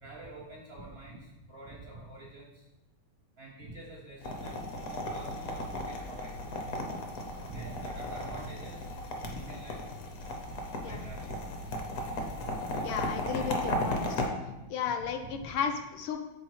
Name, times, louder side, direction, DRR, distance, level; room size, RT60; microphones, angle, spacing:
voice 1, 0.0-2.7 3.4-6.3 7.2-9.0 9.2-9.9 10.1-10.2 10.8-11.8 12.4-13.6 13.9-14.7 15.0-15.5, right 2 dB, 60° right, -2 dB, 0.6 m, -47 dB
sound 1, 4.2-14.3, left 1 dB, 55° left, 1.0 m, -35 dB
voice 2, 12.8-14.1 14.7-16.2, left 7 dB, 75° left, 5 dB, 1.4 m, -34 dB
5.8 x 4.1 x 4.8 m, 0.98 s
omnidirectional pair, 2.3 m